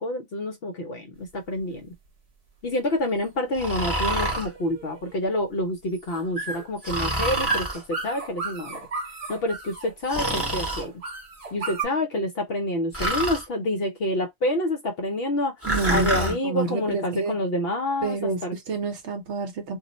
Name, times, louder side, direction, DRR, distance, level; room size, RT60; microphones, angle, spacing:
voice 1, 0.0-1.9 2.6-8.8 9.3-10.9 11.5-15.5 15.9-18.5, left 1 dB, 60° left, 0.7 m, -27 dB
sound 1, 1.2-11.9, right 3 dB, 45° right, 0.5 m, -36 dB
Breathing, 3.6-4.5 6.8-7.8 10.1-10.8 12.9-13.4 15.6-16.3, right 1 dB, 10° right, 0.8 m, -27 dB
voice 2, 15.7-17.4 18.0-19.8, right 4 dB, 60° right, 0.9 m, -29 dB
2.4 x 2.0 x 3.9 m
omnidirectional pair, 1.4 m